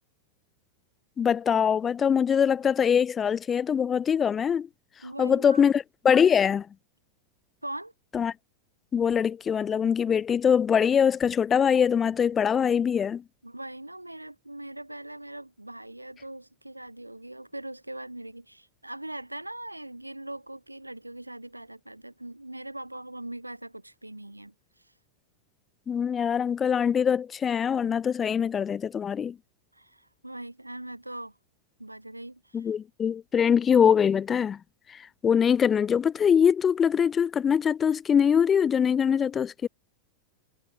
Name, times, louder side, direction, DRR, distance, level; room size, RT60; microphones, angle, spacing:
voice 1, 1.2-4.7 5.2-6.7 8.1-8.3 8.9-13.2 25.9-29.4 32.5-34.6 34.9-39.7, left 7 dB, 20° left, 0.7 m, -23 dB
voice 2, 5.0-5.6 7.6-7.9 13.4-24.9 29.7-31.4 31.8-32.7, right 1 dB, 85° right, 3.1 m, -41 dB
figure-of-eight pair, 90°, 0 cm